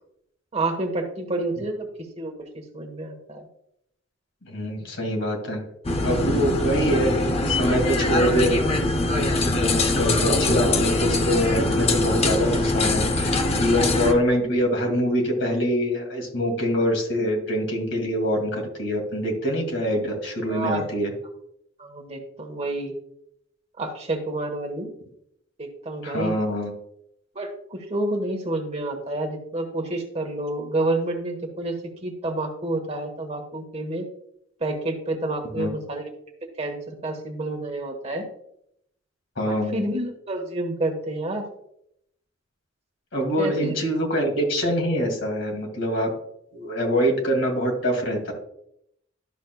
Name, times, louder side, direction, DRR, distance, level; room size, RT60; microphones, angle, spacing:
voice 1, 0.5-1.9 2.2-2.3 2.7-3.5 20.5-20.9 21.8-22.9 23.8-24.9 25.6-26.3 27.3-31.7 32.0-34.1 34.6-36.1 36.6-38.2 39.5-41.4 43.4-43.7, right 2 dB, 30° right, 3 dB, 1.3 m, -29 dB
voice 2, 4.4-5.7 6.0-8.6 9.4-21.1 26.0-26.7 35.6-35.7 39.4-39.8 43.1-46.1 46.5-48.3, equal, 70° left, 2 dB, 2.4 m, -24 dB
sound 1, 5.8-14.1, left 2 dB, 30° left, 0.7 m, -22 dB
12.0 x 6.3 x 2.3 m, 0.74 s
head